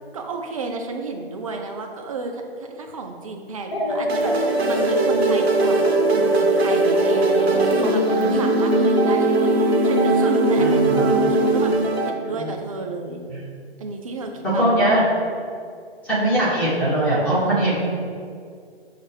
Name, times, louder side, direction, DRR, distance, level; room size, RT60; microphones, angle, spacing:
voice 1, 0.1-11.7 12.0-13.2 13.8-15.0, right 3 dB, 35° right, 3 dB, 0.4 m, -32 dB
sound 1, 3.7-11.7, right 2 dB, 25° left, 0.5 m, -20 dB
sound 2, 4.1-12.1, right 3 dB, 75° right, 0.6 m, -26 dB
voice 2, 10.6-11.0 12.3-12.5 13.3-13.4 14.6-15.0 16.0-17.9, right 1 dB, 5° left, -10 dB, 1.0 m, -21 dB
6.3 x 2.4 x 3.3 m, 2.2 s
figure-of-eight pair, 135°, 32 cm